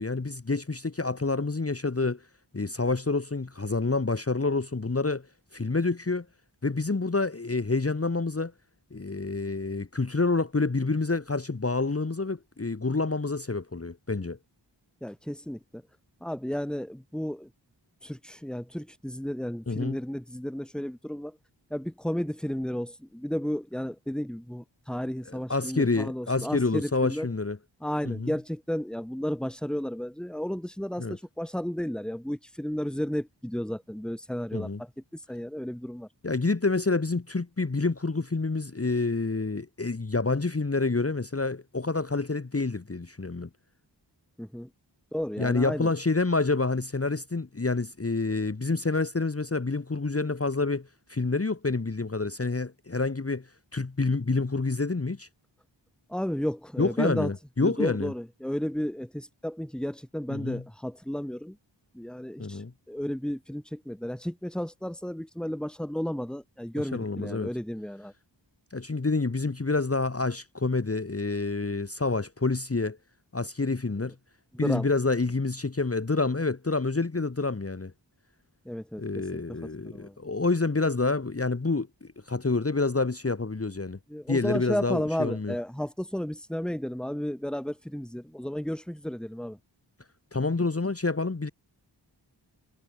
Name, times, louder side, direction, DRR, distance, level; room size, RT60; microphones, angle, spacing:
voice 1, 0.0-2.2 2.5-5.3 5.5-6.2 6.6-8.5 8.9-14.4 19.7-20.0 25.3-27.6 28.0-28.3 31.0-31.2 34.5-34.8 36.2-43.5 45.4-53.4 53.7-55.3 56.8-58.1 60.3-60.6 62.4-62.7 66.9-67.5 68.7-73.0 73.3-74.1 74.6-77.9 79.0-84.0 84.3-85.5 90.3-91.5, left 3 dB, 30° left, 1.4 m, -28 dB
voice 2, 15.0-15.8 16.2-17.5 18.0-21.4 21.7-27.3 27.8-34.9 35.3-36.1 44.4-44.7 45.1-45.9 56.1-57.3 57.6-61.6 61.9-62.6 62.9-68.1 74.5-74.9 78.7-79.0 79.3-79.4 79.8-80.2 84.1-89.6, equal, ahead, 2.4 m, -33 dB
wide cardioid pair, 45°, 45 cm